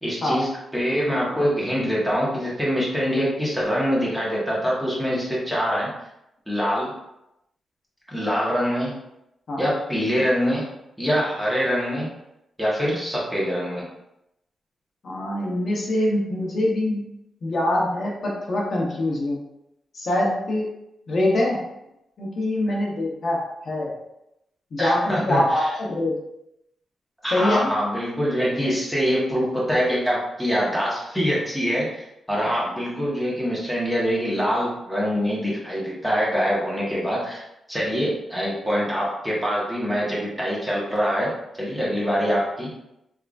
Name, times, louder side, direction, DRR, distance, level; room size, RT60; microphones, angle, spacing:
voice 1, 0.0-5.9 6.5-6.9 8.1-9.0 9.6-10.6 11.0-12.1 12.6-13.9 24.8-25.7 27.2-41.3 41.6-42.7, equal, 5° right, -6 dB, 1.3 m, -24 dB
voice 2, 15.0-17.0 17.4-19.4 19.9-20.6 21.1-21.6 22.2-23.9 24.7-26.2 27.3-27.7, left 1 dB, 55° left, -3 dB, 0.9 m, -24 dB
3.6 x 3.4 x 2.5 m, 0.85 s
cardioid pair, 85°, 0 cm